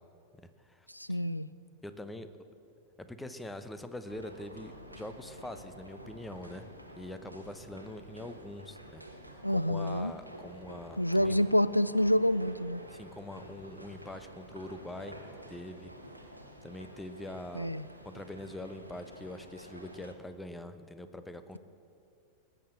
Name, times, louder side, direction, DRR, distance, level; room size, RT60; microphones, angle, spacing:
voice 1, 0.3-1.2 1.8-2.3 3.0-6.7 7.0-9.0 9.5-11.4 12.9-15.1 15.5-15.9 16.6-17.8 18.0-21.6, left 1 dB, 5° left, 10 dB, 0.8 m, -44 dB
voice 2, 0.9-1.5 9.4-10.1 11.0-12.8 17.5-17.9, equal, 90° left, 17 dB, 0.3 m, -27 dB
sound 1, 4.1-20.1, equal, 90° right, 1.3 m, -50 dB
19.0 x 7.6 x 7.8 m, 2.6 s
figure-of-eight pair, 90°, 0 cm